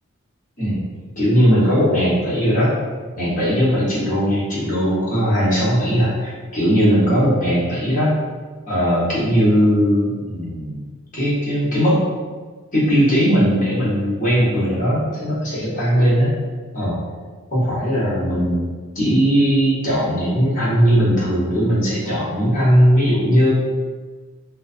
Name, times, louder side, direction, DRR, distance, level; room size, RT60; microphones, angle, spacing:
voice 1, 1.2-2.8 3.1-8.1 8.7-10.8 11.1-12.1 12.7-16.3 16.7-17.0 17.5-18.6 18.9-23.5, equal, 35° left, -9 dB, 0.9 m, -18 dB
2.4 x 2.4 x 2.4 m, 1.4 s
head